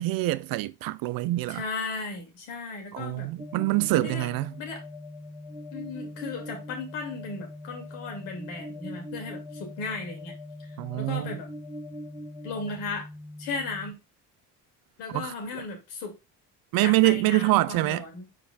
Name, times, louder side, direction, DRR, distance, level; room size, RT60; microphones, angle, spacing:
voice 1, 0.0-1.7 2.9-4.5 10.8-11.4 15.1-15.6 16.7-18.0, right 18 dB, 45° right, 0.5 m, -25 dB
voice 2, 1.5-3.3 3.9-4.3 4.6-4.8 5.7-10.3 11.0-11.5 12.4-13.1 13.4-14.0 15.0-16.2 16.8-18.3, left 4 dB, 65° left, 2.6 m, -36 dB
sound 1, 3.4-13.9, left 1 dB, 10° right, 2.4 m, -41 dB
9.0 x 5.0 x 2.4 m
figure-of-eight pair, 50°, 49 cm